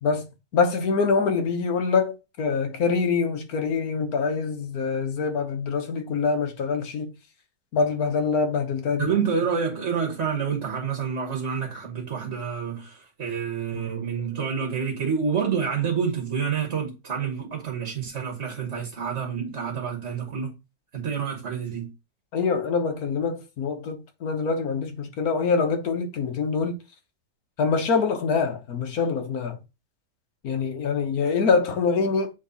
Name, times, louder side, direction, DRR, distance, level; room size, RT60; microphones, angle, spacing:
voice 1, 0.5-7.1 7.7-9.1 22.3-26.7 27.6-29.6 30.4-32.3, left 5 dB, 60° left, 1.4 m, -25 dB
voice 2, 9.0-20.6 20.9-21.9, right 6 dB, 45° right, 1.5 m, -28 dB
8.2 x 3.2 x 4.0 m
omnidirectional pair, 1.9 m